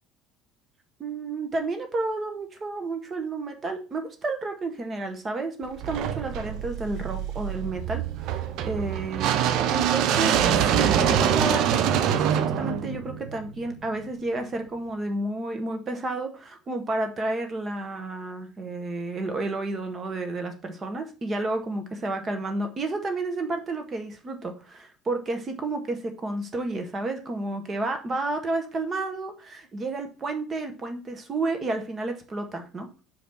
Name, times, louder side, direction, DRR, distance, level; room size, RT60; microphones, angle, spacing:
voice 1, 1.0-32.9, right 2 dB, 30° right, 5 dB, 1.6 m, -31 dB
sound 1, 5.8-13.9, right 9 dB, 50° right, 0.7 m, -25 dB
5.9 x 5.0 x 5.9 m, 0.34 s
figure-of-eight pair, 60°, 0 cm